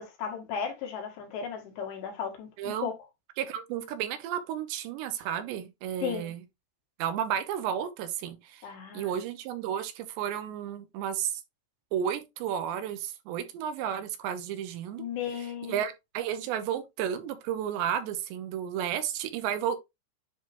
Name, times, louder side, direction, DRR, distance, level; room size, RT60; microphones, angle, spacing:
voice 1, 0.0-2.9 6.0-6.3 8.6-9.2 15.0-15.8, left 7 dB, 75° left, 4.1 m, -35 dB
voice 2, 2.6-2.9 3.4-6.4 7.0-8.6 8.9-11.3 11.9-15.0 15.6-19.8, right 9 dB, 85° right, 3.2 m, -32 dB
10.0 x 3.8 x 2.9 m
omnidirectional pair, 5.0 m